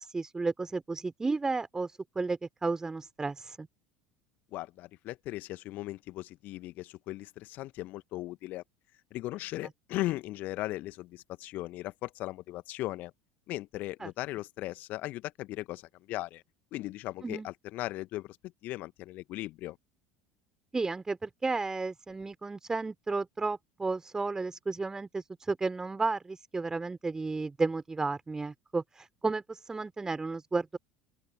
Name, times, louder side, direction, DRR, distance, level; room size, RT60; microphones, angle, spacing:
voice 1, 0.0-3.7 14.0-14.1 17.2-17.5 20.7-30.8, right 3 dB, 15° right, 4.3 m, -33 dB
voice 2, 4.5-8.6 9.1-13.1 13.5-16.4 16.7-18.4 18.6-19.8, left 17 dB, 50° left, 2.0 m, -38 dB
open air
figure-of-eight pair, 70°, 4 cm